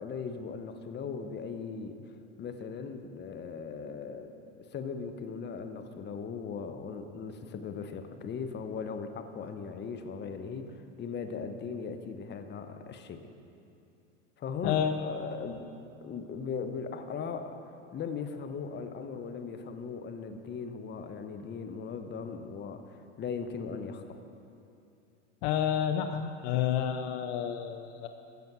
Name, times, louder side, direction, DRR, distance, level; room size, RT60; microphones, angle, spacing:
voice 1, 0.0-2.0 2.4-13.2 14.4-15.6 16.0-17.6 17.9-24.2, left 5 dB, 30° left, 8 dB, 1.0 m, -38 dB
voice 2, 14.6-15.1 25.4-28.1, left 9 dB, 60° left, 7 dB, 0.7 m, -29 dB
14.0 x 7.0 x 6.1 m, 2.6 s
hypercardioid pair, 95°, 37 cm